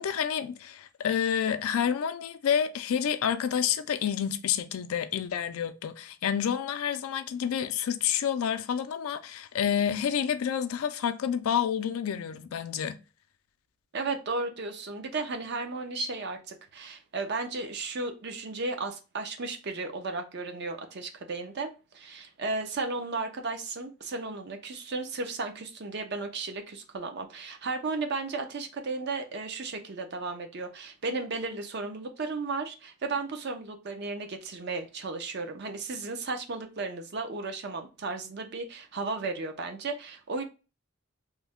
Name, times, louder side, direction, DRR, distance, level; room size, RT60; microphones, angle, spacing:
voice 1, 0.0-13.0, left 8 dB, 85° left, 0.4 m, -29 dB
voice 2, 13.9-40.4, right 3 dB, 50° right, 0.5 m, -34 dB
3.1 x 2.1 x 3.5 m
head